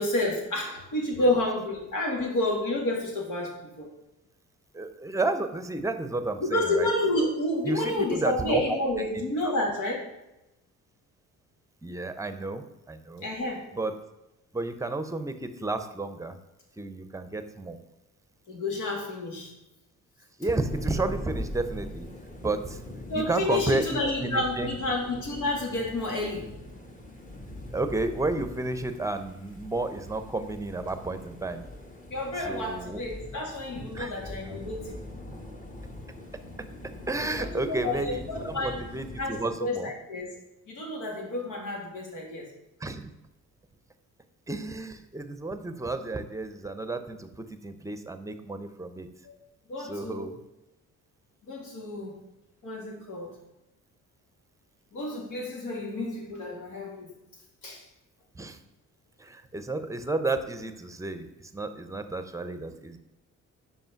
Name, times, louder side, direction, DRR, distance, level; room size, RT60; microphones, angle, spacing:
voice 1, 0.0-3.9 6.4-10.0 13.2-13.7 18.5-19.5 23.1-26.4 32.1-35.0 37.4-38.8 39.2-40.3 40.7-42.5 49.2-49.3 49.7-50.3 51.4-52.2 52.6-53.3 54.9-57.2 57.6-57.8, left 1 dB, 80° left, -1 dB, 2.2 m, -30 dB
voice 2, 4.7-6.9 7.6-8.8 9.4-9.5 11.8-13.3 13.7-13.9 14.5-16.4 16.8-17.8 20.4-22.1 22.4-22.8 23.1-24.8 27.7-31.6 32.4-33.0 33.9-34.5 37.1-39.9 42.8-43.1 44.5-49.1 49.8-50.4 58.3-58.6 59.2-63.0, right 2 dB, 10° right, 9 dB, 0.7 m, -32 dB
sound 1, 20.7-39.5, left 1 dB, 25° left, 1.5 m, -42 dB
5.4 x 4.9 x 5.7 m, 0.93 s
cardioid pair, 90°, 30 cm